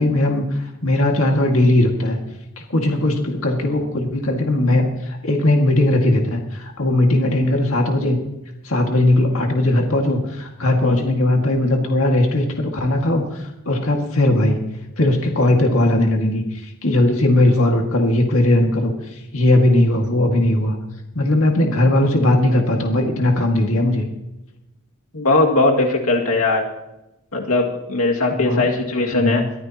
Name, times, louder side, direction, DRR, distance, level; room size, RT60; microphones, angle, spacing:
voice 1, 0.0-2.2 2.7-8.2 8.6-14.6 15.0-20.8 21.1-24.0 28.3-28.7 29.1-29.5, left 1 dB, 70° left, 2 dB, 2.0 m, -18 dB
voice 2, 25.1-26.7 27.3-29.4, left 2 dB, 90° left, 0 dB, 2.2 m, -19 dB
22.5 x 14.5 x 3.0 m, 0.93 s
head